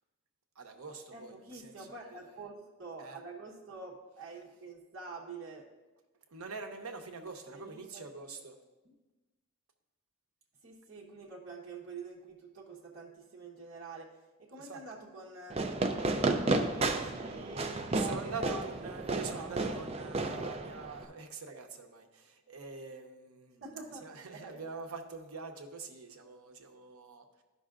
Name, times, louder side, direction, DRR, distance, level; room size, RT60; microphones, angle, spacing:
voice 1, 0.6-2.4 3.0-3.2 6.3-8.6 14.6-14.8 17.9-23.6 24.0-27.4, right 4 dB, 90° right, 5 dB, 0.8 m, -45 dB
voice 2, 1.1-5.6 7.5-8.0 10.6-14.1 14.4-15.6 16.2-18.7 19.0-19.5 23.6-24.6, right 4 dB, 60° right, -3 dB, 1.0 m, -46 dB
Fireworks, 15.5-21.0, right 2 dB, 30° right, 0.4 m, -32 dB
12.5 x 5.4 x 2.5 m, 1.1 s
head